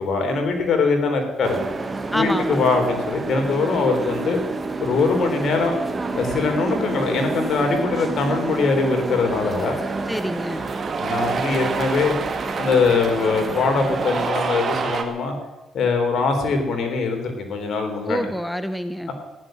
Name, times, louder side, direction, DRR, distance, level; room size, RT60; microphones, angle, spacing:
voice 1, 0.0-1.6 2.1-4.4 4.8-5.7 6.1-9.8 11.0-12.1 12.6-15.3 15.7-18.2, left 4 dB, 60° left, 4 dB, 3.7 m, -22 dB
sound 1, 1.4-14.3, right 3 dB, 30° right, 2.0 m, -29 dB
voice 2, 2.1-2.6 10.1-10.6 18.1-19.1, equal, 5° left, 11 dB, 0.9 m, -26 dB
Cheering, 9.0-15.0, right 5 dB, 50° right, 2.0 m, -29 dB
15.0 x 11.0 x 7.7 m, 1.1 s
cardioid pair, 90°, 0 cm